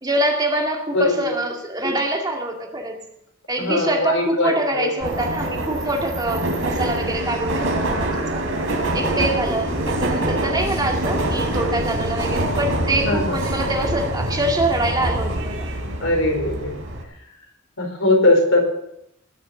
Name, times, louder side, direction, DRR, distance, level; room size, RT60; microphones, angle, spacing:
voice 1, 0.0-3.0 3.5-8.4 8.9-15.7, right 1 dB, 20° right, 1 dB, 2.1 m, -24 dB
voice 2, 0.9-1.3 3.6-4.9 9.1-9.3 13.0-13.4 16.0-16.7 17.8-18.6, left 2 dB, 80° left, 1 dB, 4.7 m, -20 dB
Subway metro underground, 5.0-17.0, right 1 dB, 80° right, 3.5 m, -25 dB
20.5 x 6.9 x 8.2 m, 0.81 s
head